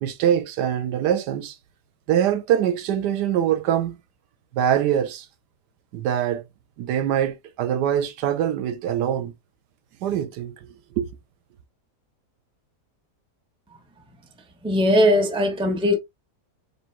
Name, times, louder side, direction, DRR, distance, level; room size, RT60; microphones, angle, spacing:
voice 1, 0.0-1.6 2.1-4.0 4.5-5.3 5.9-6.4 6.8-9.3 10.0-11.2, right 10 dB, 80° right, 1.3 m, -23 dB
voice 2, 14.6-16.0, left 1 dB, 5° right, 0.6 m, -19 dB
4.4 x 3.6 x 2.4 m
omnidirectional pair, 1.8 m